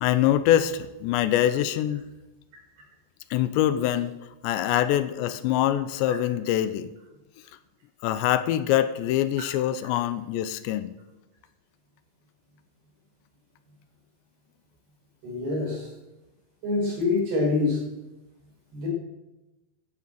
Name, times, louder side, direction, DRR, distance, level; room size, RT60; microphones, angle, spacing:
voice 1, 0.0-2.0 3.3-4.1 4.4-6.9 8.0-10.9, left 12 dB, 85° left, 13 dB, 3.0 m, -24 dB
voice 2, 15.2-15.9 16.6-17.8 18.7-18.9, left 3 dB, 60° right, -2 dB, 7.4 m, -25 dB
13.5 x 12.0 x 7.8 m, 1.0 s
omnidirectional pair, 5.0 m